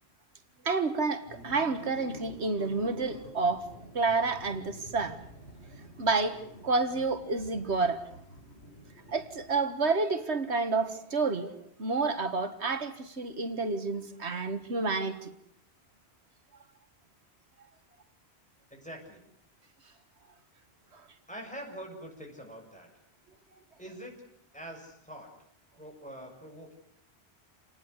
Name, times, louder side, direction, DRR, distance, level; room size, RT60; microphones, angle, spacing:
voice 1, 0.7-3.7 3.9-5.2 6.0-6.4 6.6-8.1 9.1-11.5 11.8-15.3, right 3 dB, 85° right, 1.9 m, -29 dB
sound 1, 1.2-9.8, equal, 80° left, 5.1 m, -50 dB
voice 2, 18.7-19.2 21.3-22.9 23.8-24.1 24.5-25.3 25.8-26.8, equal, 5° left, 7.1 m, -44 dB
28.0 x 20.0 x 8.2 m
omnidirectional pair, 1.1 m